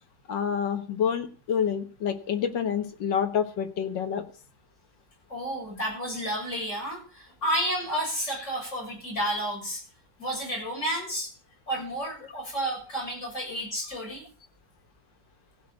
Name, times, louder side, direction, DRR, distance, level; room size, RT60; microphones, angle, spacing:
voice 1, 0.3-4.2, left 7 dB, 75° left, 8 dB, 2.1 m, -28 dB
voice 2, 5.3-9.8 10.2-11.3 11.7-14.2, equal, 40° left, -2 dB, 7.8 m, -31 dB
15.5 x 6.1 x 8.7 m, 0.39 s
omnidirectional pair, 2.0 m